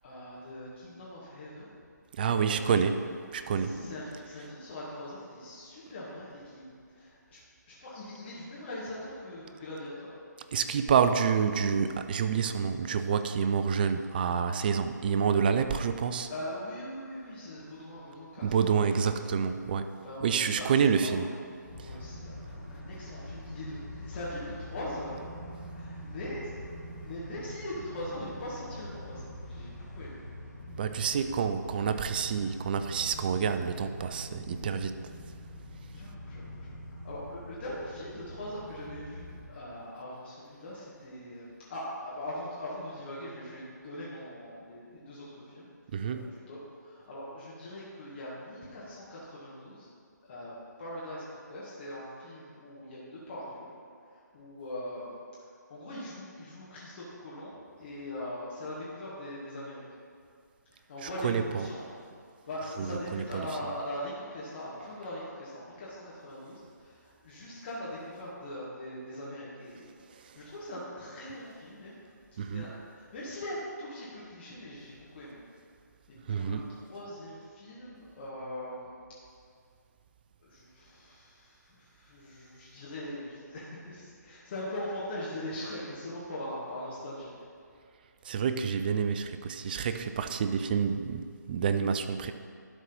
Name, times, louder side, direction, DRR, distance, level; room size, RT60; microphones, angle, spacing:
voice 1, 0.0-1.7 2.3-2.8 3.5-7.4 7.7-10.1 16.3-19.3 20.0-21.3 21.8-22.3 22.7-25.2 25.7-26.6 27.0-30.2 35.9-45.7 46.1-49.9 50.2-53.7 54.1-55.2 55.7-59.8 60.7-61.8 62.5-72.0 72.3-75.4 76.1-78.9 80.4-87.5, left 1 dB, 35° left, -8 dB, 1.7 m, -41 dB
voice 2, 2.1-3.1 3.3-3.7 10.5-16.3 18.4-20.0 20.2-21.3 21.8-21.9 30.7-35.0 45.9-46.3 61.0-61.7 62.8-63.2 70.2-70.4 72.4-72.7 76.3-76.7 88.2-92.3, right 6 dB, 30° right, 9 dB, 0.4 m, -28 dB
sound 1, 21.6-39.5, left 1 dB, 10° left, 2.1 m, -44 dB
11.5 x 4.1 x 5.5 m, 2.2 s
figure-of-eight pair, 150°, 10 cm